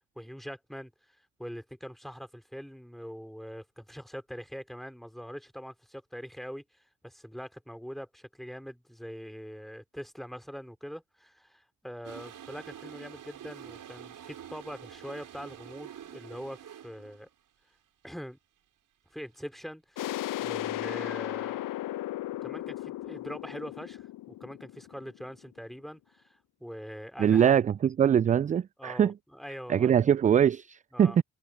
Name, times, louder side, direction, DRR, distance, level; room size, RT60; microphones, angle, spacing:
voice 1, 0.1-0.9 1.4-17.3 18.0-18.4 19.1-21.7 22.4-27.6 28.8-29.9 30.9-31.2, equal, ahead, 4.7 m, -43 dB
Toilet flush, 12.0-17.3, right 10 dB, 50° right, 4.6 m, -47 dB
sound 1, 20.0-25.4, left 15 dB, 50° left, 1.0 m, -36 dB
voice 2, 27.2-29.1 29.7-31.2, right 8 dB, 20° right, 0.4 m, -23 dB
figure-of-eight pair, 50°, 41 cm